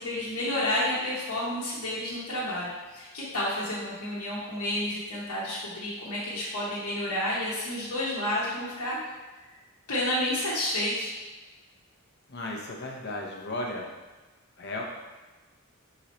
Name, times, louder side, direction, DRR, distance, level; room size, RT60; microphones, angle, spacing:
voice 1, 0.0-9.0 9.9-11.1, left 1 dB, 85° left, -8 dB, 1.0 m, -30 dB
voice 2, 12.3-13.9 14.6-14.8, left 2 dB, 50° left, -1 dB, 0.7 m, -35 dB
3.9 x 3.0 x 4.2 m, 1.2 s
head